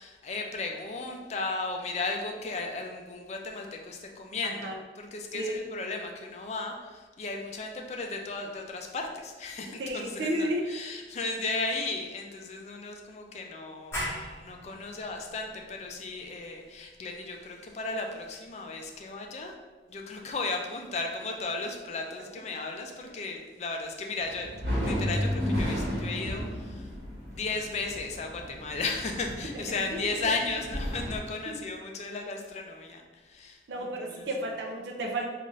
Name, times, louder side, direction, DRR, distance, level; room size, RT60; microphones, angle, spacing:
voice 1, 0.0-19.5 19.9-26.9 27.3-34.3, left 3 dB, 40° left, 2 dB, 0.4 m, -35 dB
voice 2, 4.4-4.8 5.3-5.5 9.8-10.6 29.5-29.6 29.9-30.0 31.5-31.6 33.7-35.3, right 1 dB, 85° right, 0 dB, 0.5 m, -32 dB
sound 1, 13.9-19.3, left 1 dB, 15° left, 0.9 m, -42 dB
sound 2, 24.2-31.2, equal, 65° right, 1.3 m, -33 dB
3.8 x 2.5 x 3.1 m, 1.3 s
head